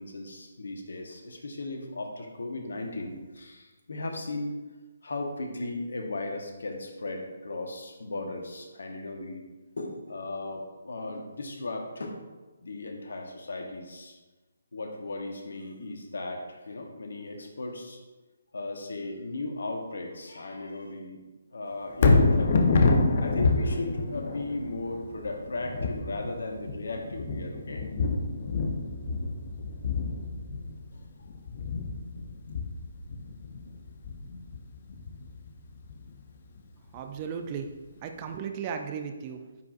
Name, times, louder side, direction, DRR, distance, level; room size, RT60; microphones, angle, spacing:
voice 1, 0.0-4.5 5.0-9.4 9.8-12.2 12.6-14.2 14.7-18.0 18.5-21.2 21.5-22.7 23.2-27.8 30.9-31.0, left 2 dB, 70° left, 3 dB, 1.2 m, -36 dB
Thunder, 21.9-36.1 36.6-36.7, left 3 dB, 45° left, 0.7 m, -27 dB
voice 2, 36.9-37.7 38.0-39.4, right 7 dB, 30° right, 6 dB, 0.5 m, -35 dB
9.4 x 4.7 x 2.5 m, 1.2 s
figure-of-eight pair, 145°, 0 cm